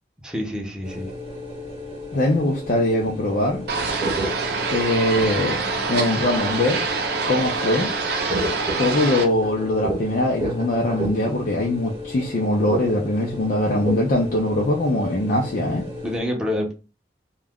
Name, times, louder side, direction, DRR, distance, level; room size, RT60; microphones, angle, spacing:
voice 1, 0.2-1.1 16.0-16.7, left 1 dB, 5° right, 0 dB, 0.6 m, -27 dB
sound 1, 0.8-16.2, equal, 30° right, 0.9 m, -32 dB
voice 2, 2.1-3.7 4.7-5.6 5.9-6.8 7.3-7.9 8.8-15.9, left 1 dB, 50° left, -2 dB, 0.5 m, -22 dB
sound 2, 3.7-9.2, right 4 dB, 60° right, 0.5 m, -25 dB
2.3 x 2.1 x 3.5 m, 0.32 s
head